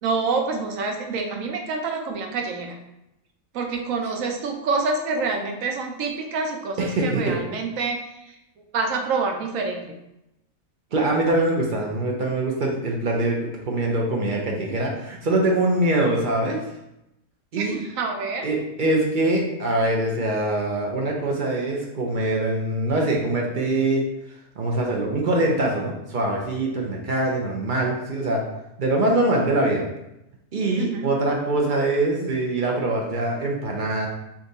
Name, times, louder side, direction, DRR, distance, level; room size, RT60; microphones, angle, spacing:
voice 1, 0.0-2.7 3.5-8.4 8.7-9.8 17.5-18.5 30.8-31.1, right 4 dB, 80° right, 3 dB, 1.0 m, -27 dB
voice 2, 6.8-7.4 10.9-16.6 17.5-17.8 18.4-24.0 24.6-28.4 28.8-29.8 30.5-34.1, right 2 dB, 50° right, -1 dB, 0.6 m, -23 dB
3.4 x 2.6 x 4.0 m, 0.88 s
omnidirectional pair, 1.4 m